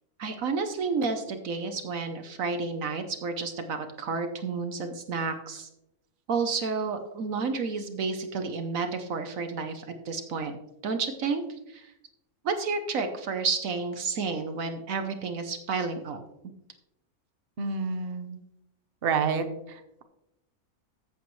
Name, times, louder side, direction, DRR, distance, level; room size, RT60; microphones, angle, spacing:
voice 1, 0.2-5.7 6.3-10.6 10.8-11.9 12.4-16.2, right 4 dB, 65° right, 7 dB, 1.2 m, -31 dB
voice 2, 17.6-18.4 19.0-20.0, right 5 dB, 45° right, 7 dB, 1.1 m, -29 dB
14.0 x 8.3 x 3.1 m, 0.89 s
omnidirectional pair, 1.6 m